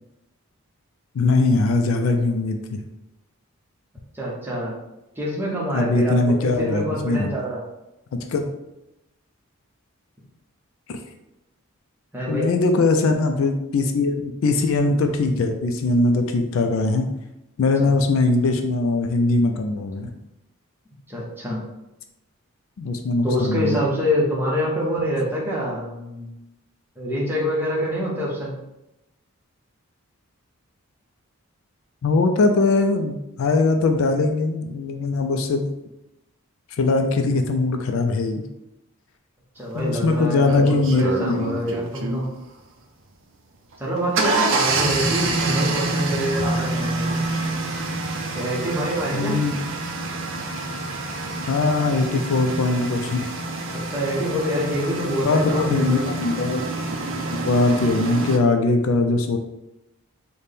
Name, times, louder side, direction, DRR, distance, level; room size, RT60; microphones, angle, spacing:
voice 1, 1.1-2.8 5.7-7.4 8.1-8.5 10.9-11.0 12.3-17.1 17.6-20.1 22.8-23.8 32.0-35.7 36.7-38.4 39.7-41.6 44.9-45.0 49.1-49.5 51.5-53.3 55.2-56.6 57.3-59.4, left 3 dB, 65° left, 5 dB, 0.3 m, -21 dB
voice 2, 4.1-4.8 5.2-7.6 12.1-12.5 17.8-17.9 21.1-21.6 23.2-26.3 27.0-28.5 39.6-42.3 43.8-47.2 48.3-49.4 53.7-56.1, equal, 10° right, -5 dB, 0.8 m, -26 dB
sound 1, 39.8-39.9 40.5-42.3 43.7-58.4, right 3 dB, 55° right, 0.4 m, -27 dB
4.1 x 2.1 x 3.3 m, 0.91 s
head